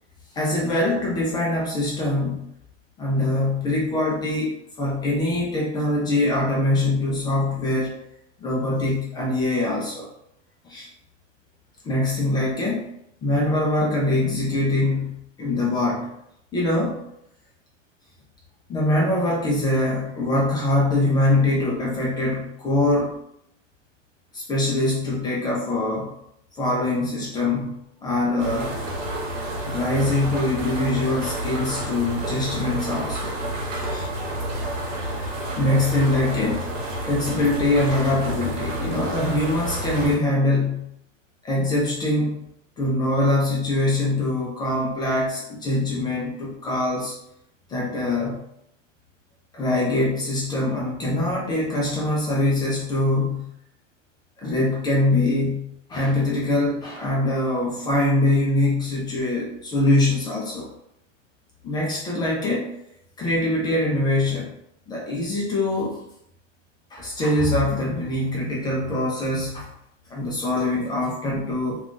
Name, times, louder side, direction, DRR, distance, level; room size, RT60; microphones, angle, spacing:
voice 1, 0.3-2.4 3.0-8.0 8.4-10.1 10.6-10.9 11.8-12.9 13.2-16.1 16.5-17.1 18.7-23.2 24.3-26.1 26.6-27.7 28.0-28.8 29.6-33.4 33.9-34.1 35.5-36.7 37.0-40.9 41.4-42.4 42.8-47.1 47.7-48.4 49.5-53.5 54.4-60.7 61.6-62.7 63.2-64.5 64.9-66.0 66.9-69.7 70.1-71.8, left 2 dB, 10° left, -3 dB, 0.3 m, -23 dB
sound 1, 28.4-40.2, right 1 dB, 85° right, 1.0 m, -29 dB
2.3 x 2.3 x 3.7 m, 0.76 s
hypercardioid pair, 125°, 37 cm